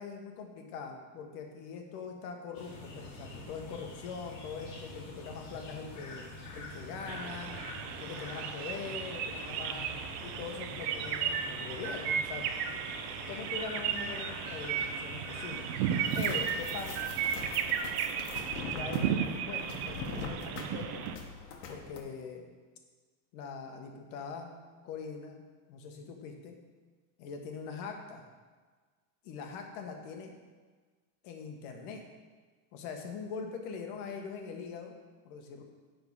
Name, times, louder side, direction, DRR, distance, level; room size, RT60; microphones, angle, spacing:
voice 1, 0.0-6.3 6.5-7.5 8.0-9.9 10.2-12.5 13.3-15.6 16.1-17.1 18.7-21.0 21.7-22.5 23.3-24.5 24.8-25.4 25.7-26.6 27.2-28.3 29.2-30.3 31.2-32.0 32.7-35.0 35.2-35.6, left 5 dB, 60° left, 3 dB, 1.3 m, -42 dB
sound 1, 2.5-17.6, left 1 dB, 45° left, 1.9 m, -46 dB
sound 2, 7.1-21.2, right 8 dB, 70° right, 0.8 m, -34 dB
sound 3, 16.0-22.0, left 5 dB, 85° left, 1.4 m, -43 dB
9.6 x 3.9 x 5.5 m, 1.4 s
cardioid pair, 170°, 48 cm